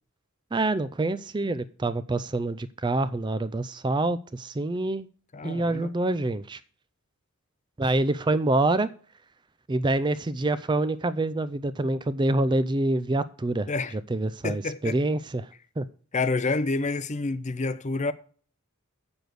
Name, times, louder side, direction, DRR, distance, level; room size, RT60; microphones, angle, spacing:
voice 1, 0.5-5.1 5.4-6.6 7.8-8.9 9.7-13.7 14.1-15.5 15.8-15.9, right 2 dB, 20° right, 0.4 m, -26 dB
voice 2, 5.3-5.9 13.7-13.9 14.4-15.0 16.1-18.1, left 3 dB, 30° left, 0.6 m, -28 dB
7.8 x 7.0 x 6.4 m
head